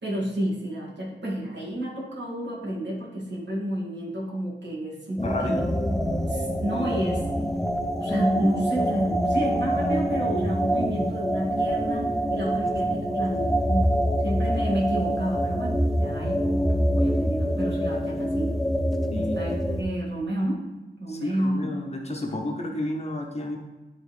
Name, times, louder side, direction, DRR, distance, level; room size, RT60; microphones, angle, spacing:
voice 1, 0.0-5.7 6.3-7.2 8.0-13.9 14.2-18.5 19.1-20.7 21.0-21.6, right 1 dB, 65° right, -5 dB, 2.0 m, -30 dB
voice 2, 5.2-5.6 19.1-19.4 21.1-23.6, left 1 dB, 35° left, 1 dB, 0.8 m, -31 dB
sound 1, 5.2-19.8, equal, ahead, 0.4 m, -25 dB
10.5 x 3.8 x 3.2 m, 1.1 s
wide cardioid pair, 145°, 19 cm